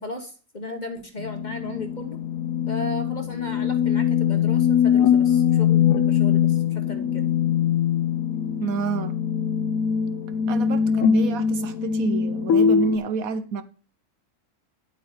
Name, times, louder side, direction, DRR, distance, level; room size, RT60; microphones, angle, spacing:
voice 1, 0.0-2.2 2.7-7.2, left 1 dB, 35° left, 1.0 m, -35 dB
sound 1, 1.2-13.0, left 8 dB, 70° left, 1.0 m, -22 dB
voice 2, 8.6-9.2 10.5-13.6, right 5 dB, 65° right, 1.2 m, -28 dB
9.4 x 8.3 x 3.9 m
omnidirectional pair, 1.6 m